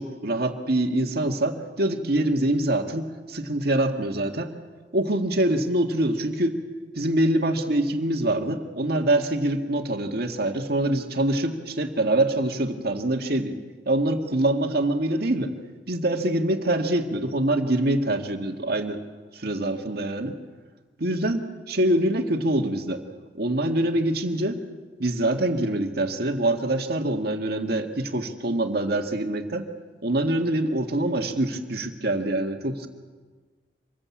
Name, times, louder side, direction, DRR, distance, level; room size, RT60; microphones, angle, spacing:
voice 1, 0.0-4.5 4.9-6.6 6.9-13.6 13.9-15.5 15.9-19.0 19.3-20.4 21.0-23.0 23.4-24.6 25.0-29.7 30.0-32.9, right 1 dB, 55° right, 4 dB, 2.0 m, -25 dB
26.0 x 21.0 x 8.6 m, 1.4 s
head